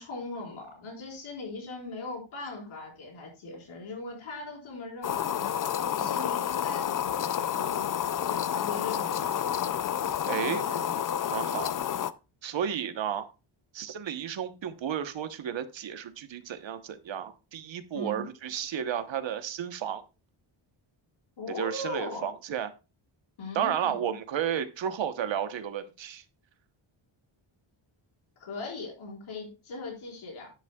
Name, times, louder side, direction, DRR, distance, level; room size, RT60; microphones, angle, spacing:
voice 1, 0.0-5.5 5.9-9.7 10.5-11.0 17.9-18.2 21.4-22.3 23.4-24.1 28.4-30.5, left 2 dB, 75° left, -1 dB, 4.6 m, -39 dB
sound 1, 5.0-12.1, left 9 dB, 45° left, 0.4 m, -30 dB
voice 2, 10.3-10.6 11.3-11.8 12.4-13.3 13.7-20.0 21.6-22.7 23.5-26.2, right 9 dB, 65° right, 10 dB, 1.1 m, -32 dB
10.5 x 10.5 x 2.3 m, 0.29 s
wide cardioid pair, 170°, 48 cm